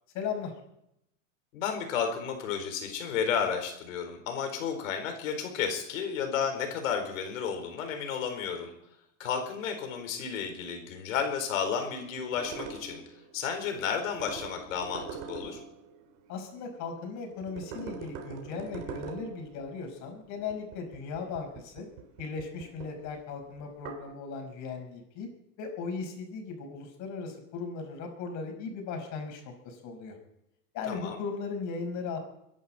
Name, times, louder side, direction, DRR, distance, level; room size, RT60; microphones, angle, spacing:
voice 1, 0.1-0.5 16.3-21.9 22.2-25.3 25.6-30.2 30.7-32.2, left 5 dB, 50° left, 3 dB, 5.4 m, -37 dB
voice 2, 1.5-8.7 9.2-13.0 13.3-15.6 30.9-31.2, left 7 dB, 85° left, 5 dB, 4.4 m, -32 dB
sound 1, 11.4-16.9 17.3-24.1, right 6 dB, 60° right, 3.5 m, -45 dB
30.0 x 11.0 x 4.3 m, 0.81 s
supercardioid pair, 120°, 39 cm